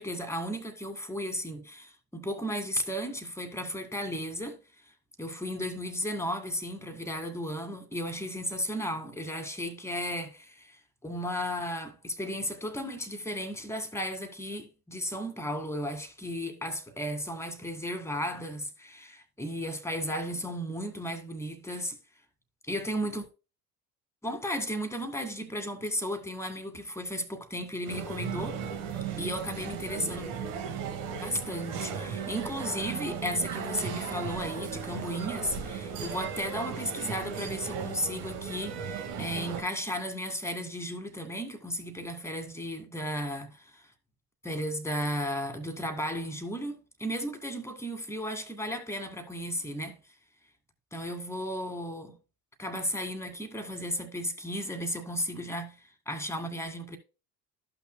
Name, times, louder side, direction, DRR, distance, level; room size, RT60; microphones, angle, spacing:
voice 1, 0.0-4.6 5.2-10.8 11.0-22.0 22.7-23.3 24.2-28.6 29.2-30.3 31.2-43.9 44.4-50.0 50.9-52.1 52.6-55.8 56.1-57.0, equal, 5° left, 1.9 m, -34 dB
sound 1, 27.8-39.6, right 6 dB, 65° right, 1.9 m, -36 dB
14.0 x 5.9 x 2.2 m
figure-of-eight pair, 60°, 48 cm